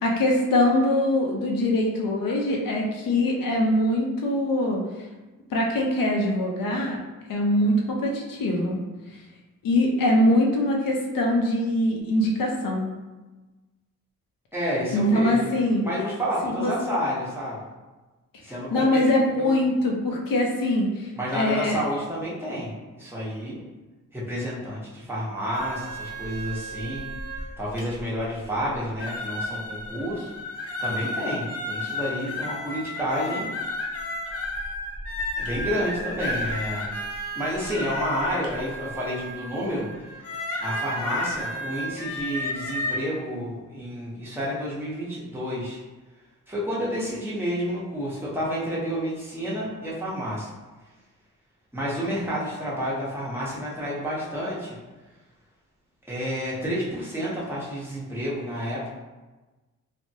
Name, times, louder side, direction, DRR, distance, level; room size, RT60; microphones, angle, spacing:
voice 1, 0.0-4.8 5.5-7.0 7.3-8.8 9.6-12.9 14.9-15.9 16.4-17.0 18.7-21.8, left 1 dB, 85° left, 0 dB, 0.7 m, -23 dB
voice 2, 14.5-15.6 15.8-17.6 18.4-19.0 19.4-19.6 21.2-23.6 24.1-27.0 27.6-30.3 30.8-33.5 35.4-36.9 37.3-45.8 46.5-50.5 51.7-54.8 56.1-58.9, equal, 5° right, -7 dB, 0.8 m, -30 dB
sound 1, 25.5-28.0 28.6-28.7 29.0-43.0, left 1 dB, 45° left, 0.6 m, -32 dB
3.2 x 2.1 x 2.7 m, 1.2 s
wide cardioid pair, 105°, 33 cm